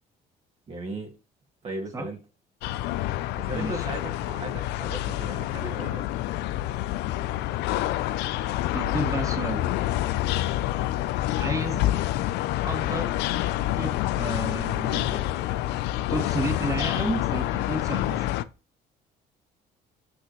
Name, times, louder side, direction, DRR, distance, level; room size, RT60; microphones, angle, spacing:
voice 1, 0.7-1.1 1.6-2.2 3.4-6.2, right 2 dB, 35° right, 1 dB, 1.8 m, -36 dB
sound 1, 2.6-18.4, left 14 dB, 85° left, 0.5 m, -27 dB
voice 2, 3.5-3.9 8.7-9.7 11.4-11.8 12.6-13.2 13.8-15.2 16.1-18.3, right 2 dB, 20° right, 4 dB, 1.9 m, -32 dB
7.7 x 6.3 x 3.1 m, 0.32 s
cardioid pair, 110°, 17 cm